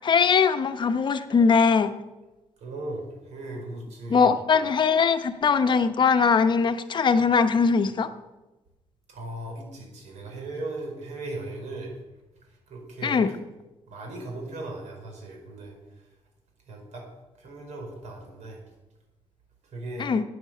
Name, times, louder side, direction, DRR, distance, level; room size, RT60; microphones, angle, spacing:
voice 1, 0.0-1.9 4.1-8.1 13.0-13.3 20.0-20.2, left 5 dB, 40° left, 9 dB, 0.8 m, -21 dB
voice 2, 2.6-4.4 9.1-11.9 12.7-13.2 13.9-16.1 16.7-17.1 17.4-18.6 19.6-20.1, right 2 dB, 85° right, 1 dB, 4.7 m, -37 dB
11.5 x 8.8 x 7.6 m, 1.1 s
cardioid pair, 150°, 12 cm